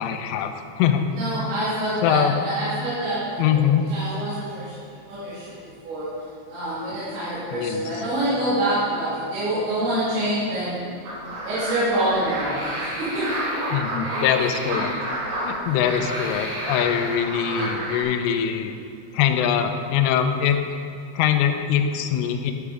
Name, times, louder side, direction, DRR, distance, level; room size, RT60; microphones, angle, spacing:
voice 1, 0.0-1.1 2.0-2.3 3.4-3.8 7.5-7.8 13.7-15.1 15.4-18.7 19.1-20.6 21.1-22.5, left 9 dB, 90° left, 5 dB, 2.4 m, -22 dB
voice 2, 1.2-4.8 5.1-6.1 6.5-11.0 11.4-13.5, right 1 dB, 65° right, -13 dB, 4.9 m, -26 dB
sound 1, 11.0-18.0, right 1 dB, 85° right, 5.2 m, -30 dB
11.0 x 6.7 x 4.9 m, 2.2 s
omnidirectional pair, 5.7 m